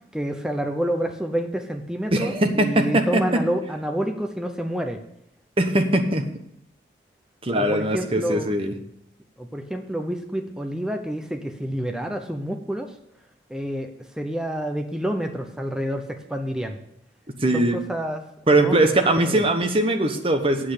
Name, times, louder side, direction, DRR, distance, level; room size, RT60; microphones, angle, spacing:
voice 1, 0.1-5.0 7.6-8.5 9.4-12.9 13.5-13.9 14.2-16.8 17.5-18.2 18.6-19.4, equal, 5° right, 4 dB, 0.7 m, -28 dB
voice 2, 2.1-3.2 5.6-6.3 7.4-8.7 17.4-17.8 18.5-20.7, right 1 dB, 30° right, 5 dB, 1.0 m, -21 dB
8.5 x 7.7 x 6.7 m, 0.75 s
head